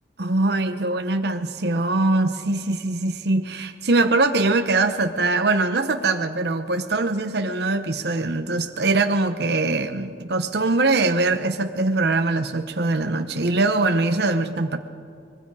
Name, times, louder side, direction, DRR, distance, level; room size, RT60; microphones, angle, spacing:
voice 1, 0.2-14.8, right 2 dB, 65° right, 6 dB, 0.9 m, -22 dB
25.5 x 22.5 x 4.8 m, 2.4 s
head